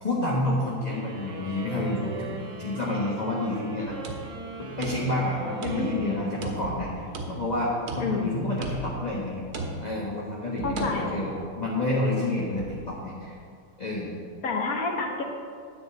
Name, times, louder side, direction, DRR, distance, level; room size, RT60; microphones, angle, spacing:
voice 1, 0.0-4.0 4.6-9.4 9.8-13.3 13.8-14.1, left 1 dB, 25° left, -5 dB, 1.2 m, -29 dB
sound 1, 0.9-7.3, right 2 dB, 40° right, 1.5 m, -40 dB
sound 2, 3.9-5.3 5.6-6.1 6.4-7.5 7.9-8.3 8.6-9.1 9.5-10.1 10.8-11.0, right 2 dB, 80° right, 2.0 m, -36 dB
voice 2, 5.8-6.3 8.0-8.5 10.6-11.3 14.4-15.2, left 4 dB, 50° left, 2 dB, 1.3 m, -29 dB
sound 3, 6.6-7.7 8.6-9.5 10.6-11.3 12.6-13.1, right 2 dB, 65° right, 1.4 m, -43 dB
10.0 x 5.4 x 8.2 m, 2.3 s
omnidirectional pair, 2.3 m